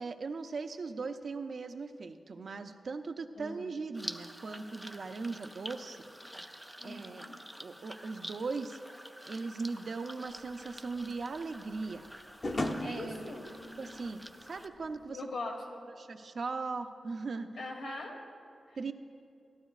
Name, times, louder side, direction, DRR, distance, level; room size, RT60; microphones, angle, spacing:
voice 1, 0.0-6.1 6.8-7.3 7.6-8.8 9.3-12.0 12.8-13.2 13.8-15.2 16.0-17.6 18.8-18.9, right 4 dB, 60° right, 7 dB, 0.5 m, -39 dB
voice 2, 3.3-3.7 6.8-7.3 12.8-13.5 15.1-15.8 17.6-18.2 18.7-18.8, left 2 dB, 80° left, 0 dB, 1.5 m, -41 dB
sound 1, 3.9-14.7, equal, ahead, 0.5 m, -48 dB
sound 2, 10.4-15.1, left 1 dB, 40° left, 0.8 m, -39 dB
15.0 x 12.0 x 2.4 m, 2.4 s
wide cardioid pair, 90°, 0 cm